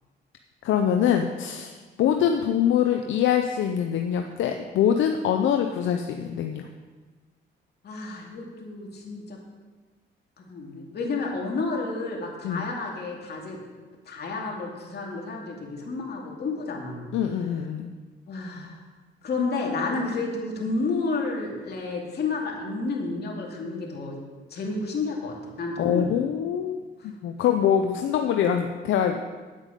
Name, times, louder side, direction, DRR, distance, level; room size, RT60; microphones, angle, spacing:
voice 1, 0.6-6.7 12.4-12.7 17.1-17.9 25.8-29.2, left 9 dB, 75° left, 5 dB, 0.7 m, -24 dB
voice 2, 7.8-9.4 10.4-13.6 14.1-17.1 18.3-18.8 19.2-24.2 24.5-26.1 27.0-27.1, left 3 dB, 55° left, -1 dB, 2.5 m, -31 dB
9.2 x 8.9 x 5.2 m, 1.4 s
cardioid pair, 90°, 20 cm